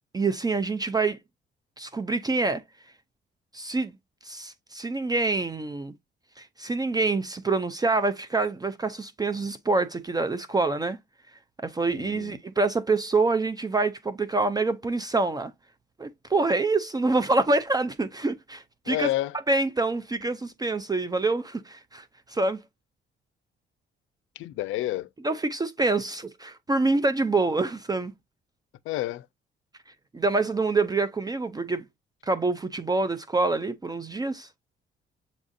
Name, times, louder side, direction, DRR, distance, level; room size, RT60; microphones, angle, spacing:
voice 1, 0.1-1.2 1.8-2.6 3.5-3.9 4.2-5.9 6.4-11.0 11.6-15.5 16.0-19.1 19.5-22.6 25.2-28.1 30.1-31.8 32.2-34.5, right 3 dB, 20° right, 0.5 m, -26 dB
voice 2, 11.9-12.4 18.9-19.4 24.4-25.1 28.9-29.3, left 15 dB, 80° left, 0.4 m, -29 dB
7.1 x 2.4 x 2.5 m
cardioid pair, 90°, 20 cm